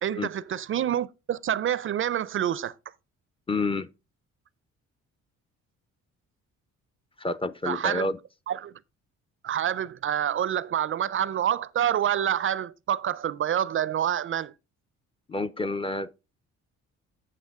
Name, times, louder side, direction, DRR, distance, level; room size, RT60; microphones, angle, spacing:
voice 1, 0.0-2.7 7.7-8.1 8.5-8.7 9.4-14.5, right 10 dB, 45° right, 0.4 m, -27 dB
voice 2, 3.5-3.9 7.2-8.2 15.3-16.1, left 2 dB, 20° left, 0.4 m, -29 dB
8.3 x 7.5 x 3.5 m
cardioid pair, 90°, 30 cm